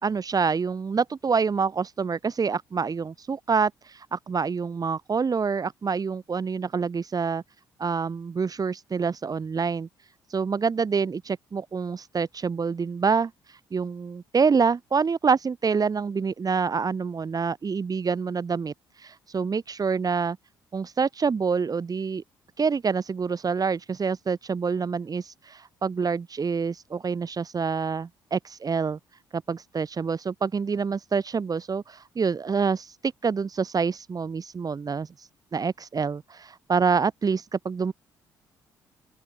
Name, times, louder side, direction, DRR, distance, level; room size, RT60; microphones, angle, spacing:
voice 1, 0.0-7.4 7.8-9.9 10.3-13.3 13.7-18.7 19.0-20.4 20.7-22.2 22.6-29.0 29.3-32.9 33.2-35.1 35.5-37.9, right 5 dB, 40° right, 3.7 m, -26 dB
open air
hypercardioid pair, 55°, 10 cm